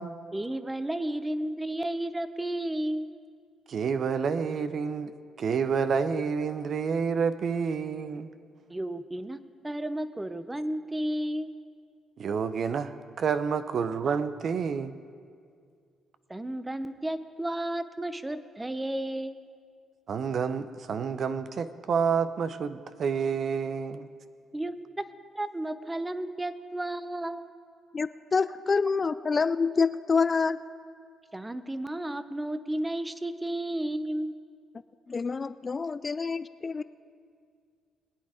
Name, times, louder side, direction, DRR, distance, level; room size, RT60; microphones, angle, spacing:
voice 1, 0.3-3.1 8.7-11.5 16.3-19.4 24.5-25.1 25.3-27.5 31.3-34.3 35.8-35.9, right 1 dB, 15° right, 12 dB, 0.7 m, -33 dB
voice 2, 3.7-8.3 12.2-15.0 20.1-24.1, right 6 dB, 55° right, 12 dB, 0.6 m, -29 dB
voice 3, 27.9-30.6 35.1-36.8, left 4 dB, 35° left, 14 dB, 0.3 m, -27 dB
21.5 x 8.9 x 5.0 m, 2.2 s
cardioid pair, 90°, 0 cm